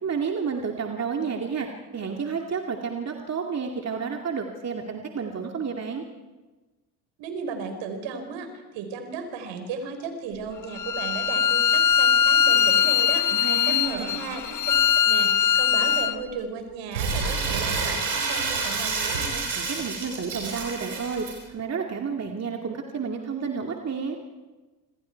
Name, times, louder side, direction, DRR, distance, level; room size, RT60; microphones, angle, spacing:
voice 1, 0.0-6.0 13.3-14.3 19.6-24.2, right 5 dB, 30° right, 2 dB, 2.5 m, -31 dB
voice 2, 7.2-8.5 8.7-14.6 14.9-19.5, right 5 dB, 60° right, 6 dB, 5.1 m, -35 dB
Bowed string instrument, 10.8-16.2, left 8 dB, 35° left, 1.6 m, -21 dB
Crumpling crinkling, 16.9-21.3, right 4 dB, 85° right, 5.6 m, -28 dB
26.5 x 26.5 x 4.7 m, 1.2 s
hypercardioid pair, 60°, 50 cm